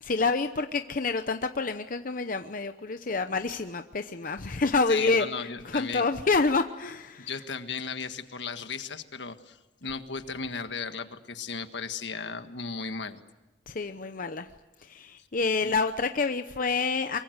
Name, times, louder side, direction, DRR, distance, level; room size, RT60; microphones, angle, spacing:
voice 1, 0.0-7.3 13.7-14.5 14.8-17.2, left 4 dB, 50° left, 8 dB, 0.8 m, -28 dB
voice 2, 4.9-6.1 7.3-13.2 15.6-15.7, left 5 dB, 75° left, 8 dB, 1.6 m, -36 dB
24.0 x 23.5 x 8.0 m, 1.1 s
head